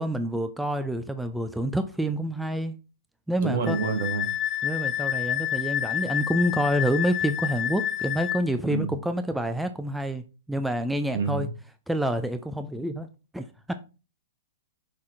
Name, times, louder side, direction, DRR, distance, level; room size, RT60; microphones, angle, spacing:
voice 1, 0.0-2.8 3.3-3.8 4.6-11.5 11.9-13.1 13.3-13.7, right 1 dB, 5° right, 9 dB, 0.5 m, -28 dB
voice 2, 3.4-4.3 8.7-8.9 11.1-11.5, right 5 dB, 60° right, 5 dB, 1.8 m, -28 dB
Wind instrument woodwind instrument, 3.7-8.4, left 11 dB, 20° left, 1.0 m, -29 dB
6.3 x 4.3 x 3.7 m, 0.32 s
hypercardioid pair, 115°, 0 cm